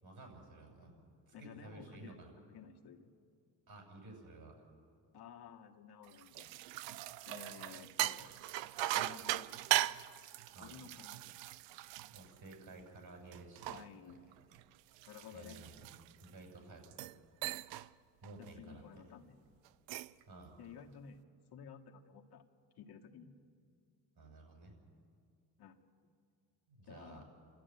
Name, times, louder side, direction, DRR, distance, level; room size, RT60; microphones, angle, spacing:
voice 1, 0.0-1.0 1.3-2.3 3.7-4.6 10.5-10.8 12.1-13.7 14.1-14.2 15.3-15.7 16.2-17.2 18.2-18.8 20.3-20.5 24.2-24.7 26.7-27.2, right 2 dB, 55° right, 2 dB, 7.0 m, -53 dB
voice 2, 1.3-2.2 2.5-3.1 5.1-6.5 7.3-8.3 8.9-9.7 10.6-11.3 13.7-14.3 15.1-15.6 18.4-19.4 20.6-21.2 21.5-22.4 22.8-23.3 25.6-25.8 26.9-27.2, left 7 dB, 60° left, 1 dB, 1.9 m, -53 dB
sound 1, 6.1-12.9 13.3-16.3 16.8-17.2 17.4-17.9 18.2-18.5 19.6-20.2, right 15 dB, 85° right, 0.6 m, -39 dB
29.0 x 13.5 x 9.7 m, 2.3 s
cardioid pair, 90°, 43 cm